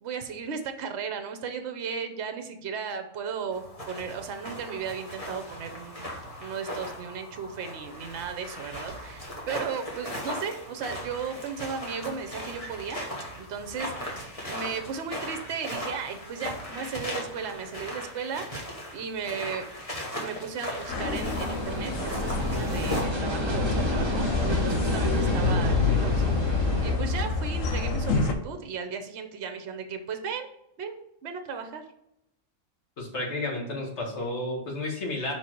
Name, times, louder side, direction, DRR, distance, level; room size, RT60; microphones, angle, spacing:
voice 1, 0.0-13.0 13.4-19.7 20.2-30.5 30.8-31.8, right 6 dB, 60° right, 8 dB, 1.0 m, -36 dB
sound 1, 3.5-23.0, equal, 30° left, 1.4 m, -38 dB
sound 2, 20.9-28.3, left 4 dB, 90° left, 1.2 m, -27 dB
sound 3, 21.5-26.9, right 1 dB, 25° right, 1.1 m, -30 dB
voice 2, 33.0-35.3, left 2 dB, 60° left, -1 dB, 1.9 m, -32 dB
5.5 x 4.5 x 4.4 m, 0.82 s
omnidirectional pair, 1.3 m